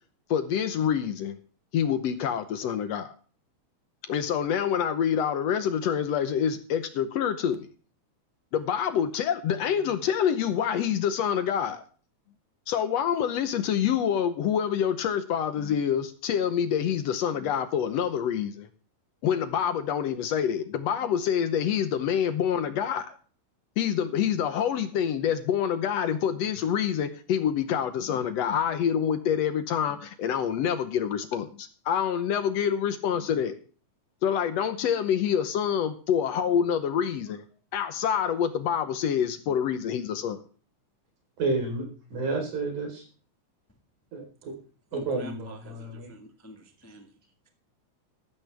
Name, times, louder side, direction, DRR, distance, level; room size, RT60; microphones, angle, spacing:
voice 1, 0.3-1.4 1.7-3.1 4.1-7.7 8.5-11.8 12.7-18.7 19.2-23.1 23.8-33.6 34.2-37.4 37.7-40.4, left 8 dB, 70° left, 10 dB, 1.9 m, -26 dB
voice 2, 41.4-42.9 44.1-44.5 44.9-46.1, right 3 dB, 80° right, 2 dB, 5.4 m, -31 dB
voice 3, 44.9-47.1, equal, 10° left, 4 dB, 0.7 m, -46 dB
13.5 x 12.0 x 3.4 m, 0.40 s
omnidirectional pair, 3.4 m